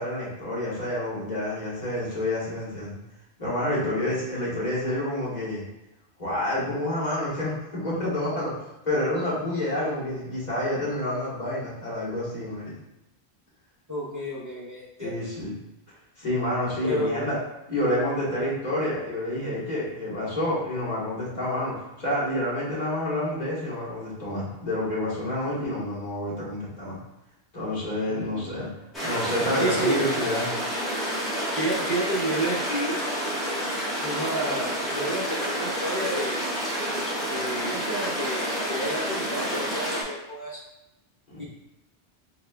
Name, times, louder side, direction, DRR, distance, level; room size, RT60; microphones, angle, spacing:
voice 1, 0.0-3.0 3.4-5.6 6.2-12.7 15.0-15.5 16.2-17.4 17.7-27.0 27.5-28.7 29.0-30.5 41.3-41.5, left 1 dB, 40° left, -7 dB, 1.5 m, -28 dB
voice 2, 13.9-15.1 16.8-17.3 28.1-28.7 29.6-30.2 31.5-33.0 34.0-36.4 37.2-40.6 41.4-41.5, right 1 dB, 20° right, -5 dB, 0.6 m, -30 dB
sound 1, 28.9-40.0, equal, ahead, 1.2 m, -29 dB
4.1 x 3.7 x 2.3 m, 0.94 s
omnidirectional pair, 1.1 m